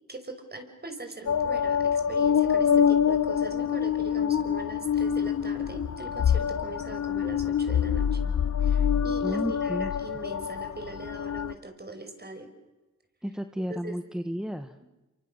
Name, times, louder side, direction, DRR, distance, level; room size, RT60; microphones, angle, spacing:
voice 1, 0.1-8.2 8.6-12.5 13.7-14.0, right 2 dB, 30° right, 6 dB, 5.9 m, -41 dB
sound 1, 1.3-11.5, left 8 dB, 60° left, 1.1 m, -26 dB
voice 2, 9.2-9.9 13.2-14.8, equal, ahead, 8 dB, 1.4 m, -32 dB
28.5 x 24.5 x 6.7 m, 1.1 s
cardioid pair, 55°, 31 cm